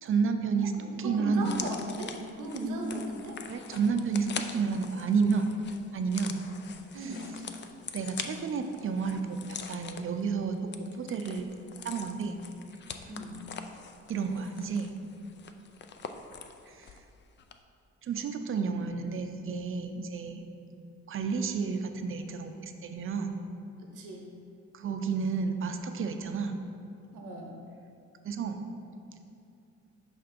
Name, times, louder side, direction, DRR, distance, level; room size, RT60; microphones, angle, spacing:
voice 1, 0.0-0.7 1.0-1.5 3.5-5.5 5.9-6.4 6.9-7.1 7.9-11.5 11.8-12.4 14.1-14.9 16.7-16.9 18.0-20.5 21.1-23.4 23.9-24.0 24.7-26.6 28.2-28.7, right 5 dB, 45° right, 6 dB, 0.5 m, -31 dB
voice 2, 0.8-3.4 4.5-4.7 6.9-7.3 13.1-13.4 23.8-24.3 27.1-27.6, right 1 dB, 90° right, 1 dB, 0.9 m, -37 dB
sound 1, 1.4-17.1 17.4-17.5, left 6 dB, 40° left, 0.4 m, -44 dB
5.6 x 3.4 x 5.1 m, 2.6 s
cardioid pair, 90°, 30 cm